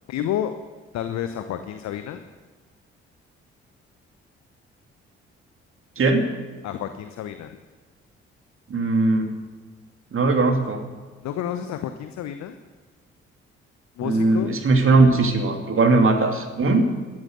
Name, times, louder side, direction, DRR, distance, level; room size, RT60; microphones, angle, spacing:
voice 1, 0.1-0.5 0.9-2.2 6.6-7.6 11.2-12.6 14.0-14.5, left 10 dB, 55° left, 9 dB, 1.0 m, -30 dB
voice 2, 6.0-6.3 8.7-9.3 10.1-10.8 14.0-16.9, right 3 dB, 40° right, 4 dB, 2.7 m, -19 dB
15.0 x 13.5 x 6.5 m, 1.4 s
figure-of-eight pair, 40°, 33 cm